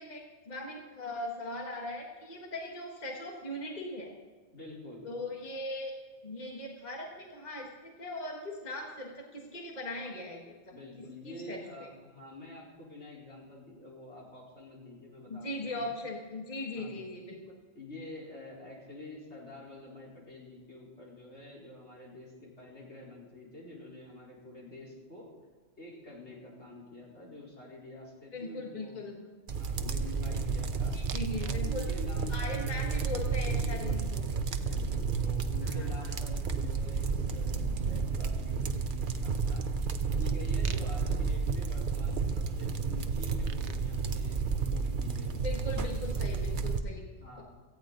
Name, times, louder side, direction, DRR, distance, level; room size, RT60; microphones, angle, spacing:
voice 1, 0.0-4.1 5.0-5.9 6.2-10.5 11.2-11.9 15.3-17.4 28.3-29.3 30.9-31.8 32.3-34.2 35.6-36.1 45.3-47.0, left 1 dB, 40° left, -1 dB, 1.7 m, -39 dB
voice 2, 4.5-5.1 10.7-15.9 16.7-17.0 17.7-25.3 25.8-29.0 29.5-31.0 31.4-33.0 33.4-39.6 40.2-45.4 47.1-47.4, left 2 dB, 80° left, -4 dB, 4.5 m, -47 dB
sound 1, 29.5-46.8, right 5 dB, 50° right, 0.9 m, -31 dB
sound 2, 31.1-31.6 31.9-32.4 34.8-34.9 35.1-45.2, right 8 dB, 90° right, 1.0 m, -45 dB
17.5 x 15.0 x 4.0 m, 1.4 s
omnidirectional pair, 1.1 m